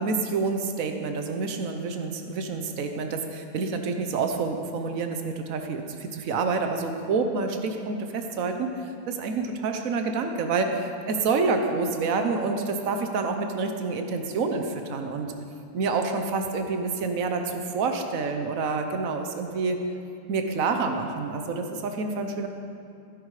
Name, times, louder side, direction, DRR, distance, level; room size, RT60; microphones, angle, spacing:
voice 1, 0.0-15.3 15.7-19.8 20.3-22.5, right 4 dB, 75° right, 5 dB, 1.4 m, -28 dB
16.0 x 10.0 x 4.9 m, 2.6 s
omnidirectional pair, 1.4 m